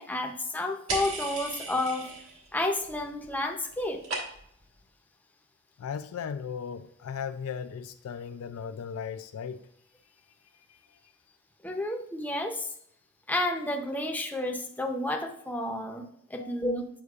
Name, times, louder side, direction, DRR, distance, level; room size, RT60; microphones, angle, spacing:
voice 1, 0.0-2.1 2.5-4.0 11.6-12.7 13.3-16.9, left 1 dB, 10° left, 0.6 m, -31 dB
sound 1, 0.9-2.5 2.8-3.3 3.6-4.6, right 3 dB, 75° right, 1.5 m, -36 dB
voice 2, 5.8-9.7 10.7-10.8 16.4-16.6, left 7 dB, 90° left, 0.4 m, -37 dB
8.0 x 5.3 x 2.4 m
head